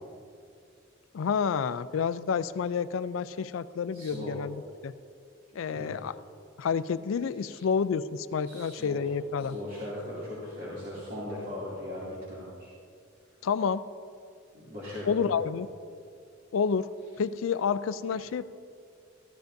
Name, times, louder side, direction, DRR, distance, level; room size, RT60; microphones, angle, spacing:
voice 1, 1.1-4.6 4.8-4.9 5.6-6.1 6.6-9.6 13.4-13.8 15.1-15.7 16.5-16.9 17.2-18.5, left 6 dB, 80° left, 15 dB, 0.4 m, -29 dB
voice 2, 3.9-4.3 5.7-6.1 7.4-7.6 8.4-9.0 9.4-12.7 14.5-15.3, left 1 dB, 45° right, -10 dB, 2.6 m, -39 dB
14.0 x 12.5 x 2.6 m, 2.4 s
head